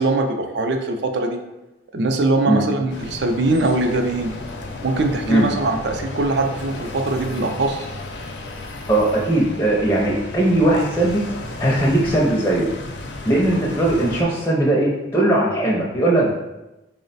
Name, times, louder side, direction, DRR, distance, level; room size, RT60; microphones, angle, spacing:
voice 1, 0.0-1.4 1.9-4.4 4.8-7.9, right 2 dB, 65° right, 5 dB, 0.4 m, -21 dB
sound 1, 2.9-14.2, left 2 dB, 70° left, 0.5 m, -34 dB
voice 2, 8.9-11.2 11.6-12.7 13.2-16.3, right 1 dB, 10° left, -4 dB, 0.4 m, -19 dB
3.9 x 2.1 x 4.0 m, 0.99 s
head